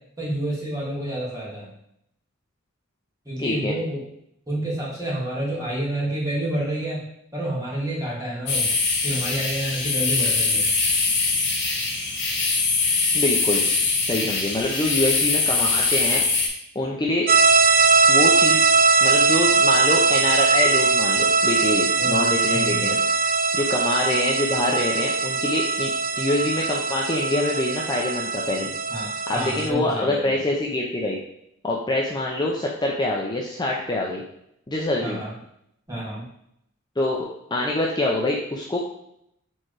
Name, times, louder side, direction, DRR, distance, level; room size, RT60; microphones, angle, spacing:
voice 1, 0.2-1.7 3.3-4.0 4.5-7.0 7.3-10.7 22.0-22.8 28.9-30.3 35.0-35.3 35.9-36.2, right 1 dB, 15° right, -7 dB, 2.3 m, -29 dB
voice 2, 3.4-3.8 13.1-13.6 14.0-16.2 16.7-17.3 18.1-18.6 19.0-23.1 23.5-25.9 26.2-28.7 29.3-31.2 31.6-34.2 34.7-35.2 37.0-38.8, left 1 dB, 20° left, -2 dB, 0.6 m, -25 dB
sound 1, 8.5-16.5, left 4 dB, 60° left, 1.6 m, -22 dB
sound 2, 17.3-29.7, right 4 dB, 45° right, 0.5 m, -20 dB
4.5 x 4.4 x 4.8 m, 0.75 s
head